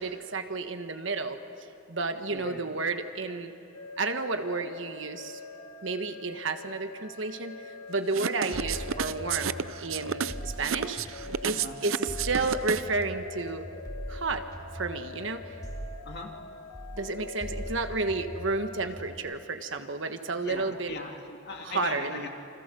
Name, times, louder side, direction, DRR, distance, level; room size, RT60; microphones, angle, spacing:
voice 1, 0.0-1.4 1.9-3.5 4.0-5.4 5.8-11.0 11.4-13.6 14.1-14.4 14.7-15.4 17.0-20.9 21.6-22.3, right 3 dB, 65° right, 7 dB, 1.5 m, -31 dB
voice 2, 2.3-2.6 8.4-8.5 11.5-11.8 16.0-16.4 20.4-22.3, left 3 dB, 55° left, 2 dB, 2.7 m, -40 dB
sound 1, 3.7-18.7, left 3 dB, 75° left, 2.3 m, -45 dB
sound 2, 8.1-13.0, right 7 dB, 90° right, 0.6 m, -31 dB
sound 3, 8.5-11.6 12.1-16.5 16.7-19.2, equal, 20° left, 2.5 m, -41 dB
28.5 x 26.0 x 7.0 m, 2.8 s
head